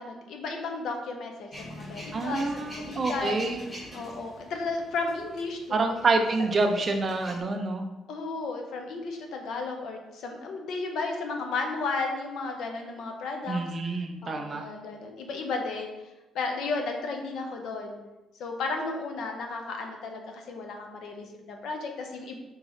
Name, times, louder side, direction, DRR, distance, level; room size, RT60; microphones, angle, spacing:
voice 1, 0.0-3.4 3.9-5.9 8.1-13.6 14.2-15.9 16.3-18.0 18.4-22.3, left 3 dB, 65° left, 3 dB, 0.6 m, -34 dB
Male speech man speaking / Vehicle / Engine starting, 1.5-7.4, equal, 20° left, 1.3 m, -45 dB
voice 2, 2.1-3.6 5.7-7.8 13.5-14.7, right 3 dB, 30° right, 5 dB, 0.4 m, -27 dB
3.8 x 3.0 x 3.9 m, 1.1 s
cardioid pair, 160°, 0 cm